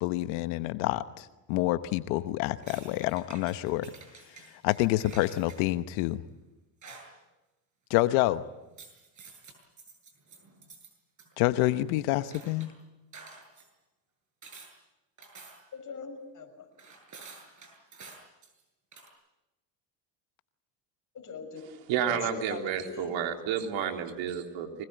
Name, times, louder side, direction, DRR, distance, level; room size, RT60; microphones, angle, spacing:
voice 1, 0.0-3.9 4.6-6.2 7.9-8.4 11.4-12.7, left 17 dB, 75° left, 11 dB, 1.2 m, -27 dB
sound 1, 2.6-5.6 6.8-7.2 8.7-10.9 11.2-12.7 13.1-13.7 14.4-14.7 15.2-15.8 16.8-18.6 18.9-19.1, right 4 dB, 35° right, 8.0 m, -50 dB
voice 2, 15.7-16.7 21.1-21.6 22.1-23.2, left 5 dB, 40° left, 5 dB, 6.4 m, -41 dB
voice 3, 21.9-24.8, right 8 dB, 65° right, 3 dB, 3.7 m, -31 dB
24.5 x 20.5 x 9.3 m, 1.0 s
supercardioid pair, 95°, 48 cm